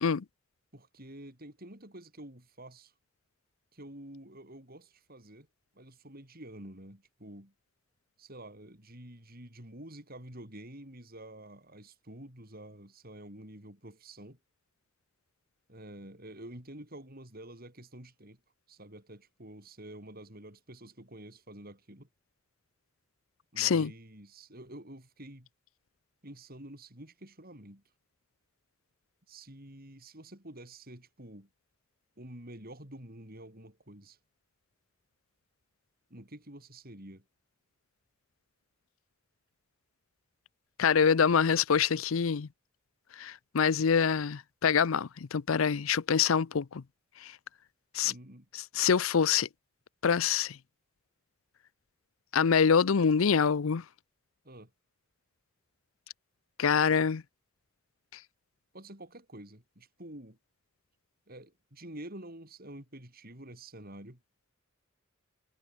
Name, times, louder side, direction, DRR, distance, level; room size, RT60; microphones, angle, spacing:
voice 1, 0.7-2.9 3.7-5.5 5.7-7.5 8.2-14.4 15.7-18.4 18.7-22.1 23.5-25.5 26.2-27.8 29.3-31.5 32.2-34.2 36.1-37.2 48.0-48.5 54.4-54.7 58.7-60.4 61.3-64.2, right 1 dB, 50° right, 7.8 m, -48 dB
voice 2, 23.6-23.9 40.8-42.5 43.2-46.8 47.2-47.3 47.9-48.1 48.8-49.5 50.0-50.6 52.3-53.8 56.6-57.2, left 6 dB, 90° left, 0.6 m, -25 dB
head